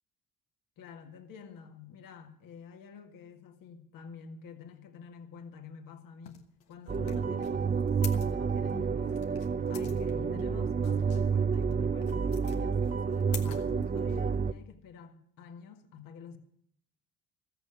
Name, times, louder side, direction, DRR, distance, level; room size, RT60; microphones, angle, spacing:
voice 1, 0.8-9.3 9.7-16.4, left 6 dB, 70° left, 1.9 m, -49 dB
sound 1, 6.2-14.4, left 9 dB, 90° left, 1.4 m, -48 dB
sound 2, 6.9-14.5, right 6 dB, 25° right, 0.6 m, -29 dB
14.0 x 8.0 x 9.9 m
supercardioid pair, 60°, 35 cm